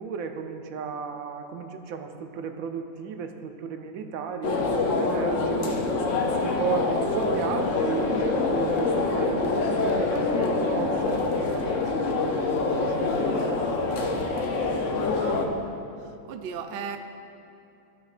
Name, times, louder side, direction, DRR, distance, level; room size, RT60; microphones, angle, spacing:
voice 1, 0.0-5.8 6.4-13.3, right 6 dB, 85° right, 6 dB, 1.0 m, -35 dB
sound 1, 4.4-15.5, left 3 dB, 65° left, 1.1 m, -25 dB
voice 2, 14.8-15.5 16.3-17.0, right 6 dB, 65° right, 7 dB, 0.6 m, -36 dB
15.0 x 5.2 x 2.5 m, 2.6 s
omnidirectional pair, 1.4 m